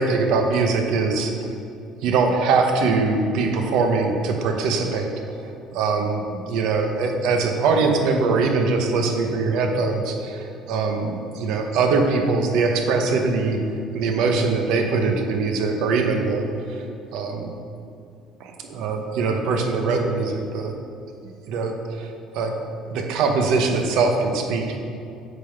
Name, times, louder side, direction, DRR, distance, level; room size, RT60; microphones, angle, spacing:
voice 1, 0.0-1.3 2.0-5.1 5.4-6.2 6.5-13.6 13.9-16.8 17.1-17.5 18.4-20.8 21.5-22.5 22.9-24.8, right 4 dB, 75° right, 4 dB, 0.9 m, -22 dB
8.2 x 3.8 x 5.6 m, 2.5 s
cardioid pair, 125°, 0 cm